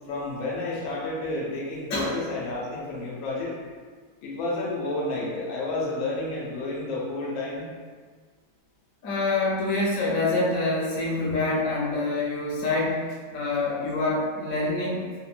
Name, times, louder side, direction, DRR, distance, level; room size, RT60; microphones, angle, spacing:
voice 1, 0.1-3.5 4.2-7.7 11.2-11.4, left 2 dB, 85° left, -4 dB, 1.5 m, -31 dB
voice 2, 9.0-13.0 13.3-15.0, left 2 dB, 60° left, -6 dB, 0.9 m, -26 dB
3.6 x 2.1 x 2.4 m, 1.5 s
omnidirectional pair, 2.2 m